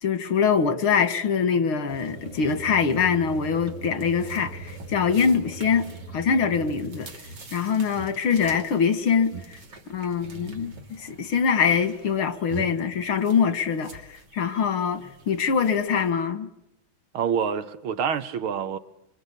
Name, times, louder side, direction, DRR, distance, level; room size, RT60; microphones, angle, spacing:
voice 1, 0.0-5.8 6.1-7.1 7.5-9.6 9.9-16.5, left 6 dB, 85° left, 2.6 m, -24 dB
sound 1, 1.9-16.1, right 4 dB, 55° right, 3.4 m, -42 dB
voice 2, 17.1-18.8, right 7 dB, 85° right, 2.1 m, -27 dB
26.0 x 25.5 x 8.4 m
omnidirectional pair, 2.3 m